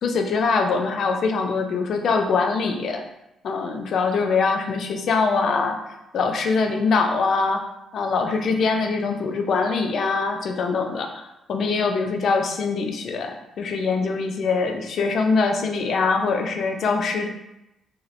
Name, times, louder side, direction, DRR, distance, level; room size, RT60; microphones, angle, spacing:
voice 1, 0.0-3.0 3.4-7.6 7.9-11.2 11.5-17.3, left 4 dB, 60° left, 5 dB, 0.4 m, -23 dB
2.9 x 2.7 x 2.6 m, 0.90 s
cardioid pair, 90°, 0 cm